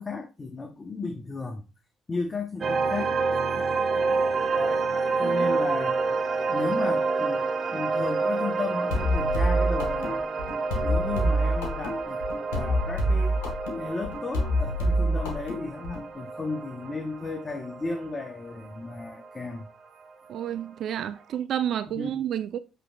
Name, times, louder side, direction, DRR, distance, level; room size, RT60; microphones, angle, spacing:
voice 1, 0.0-1.7 2.1-3.2 4.5-4.8 5.2-6.1 6.4-7.5 7.7-10.2 10.8-12.2 12.5-13.4 13.8-19.7 21.9-22.1, left 3 dB, 35° left, 0.8 m, -34 dB
sound 1, 2.6-19.6, right 4 dB, 45° right, 0.9 m, -28 dB
voice 2, 5.2-5.6 20.3-22.6, right 10 dB, 65° right, 0.4 m, -30 dB
sound 2, 8.9-16.1, equal, 85° left, 1.1 m, -27 dB
7.8 x 3.0 x 2.2 m
hypercardioid pair, 55°, 0 cm